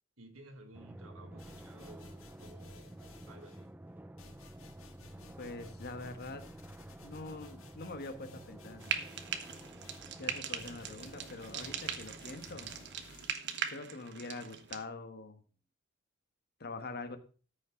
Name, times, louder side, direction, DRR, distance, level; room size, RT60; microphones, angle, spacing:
voice 1, 0.2-3.0 3.3-3.7, right 2 dB, 75° right, 1.9 m, -55 dB
Drum, 0.7-13.8, right 1 dB, 10° right, 0.4 m, -51 dB
sound 1, 1.4-3.7 4.2-13.7, left 4 dB, 75° left, 1.8 m, -58 dB
voice 2, 5.4-6.5 7.0-8.9 10.2-12.7 13.7-15.4 16.6-17.2, left 3 dB, 50° left, 1.4 m, -44 dB
Frying (food), 8.8-14.8, right 8 dB, 55° right, 1.1 m, -40 dB
13.5 x 5.8 x 5.1 m
head